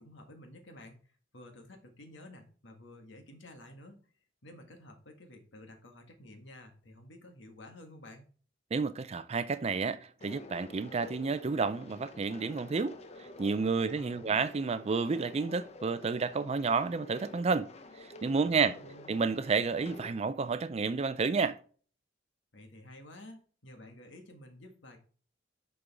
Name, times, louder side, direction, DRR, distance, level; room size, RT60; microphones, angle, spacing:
voice 1, 0.0-4.0 4.4-8.2 13.8-14.4 18.4-19.2 22.5-25.0, left 1 dB, 70° left, 1.7 m, -52 dB
voice 2, 8.7-13.0 13.4-17.7 18.2-18.8 19.1-21.6, right 4 dB, 35° right, 0.4 m, -30 dB
sound 1, 10.2-20.1, left 2 dB, 35° left, 0.7 m, -50 dB
6.8 x 5.4 x 3.4 m
head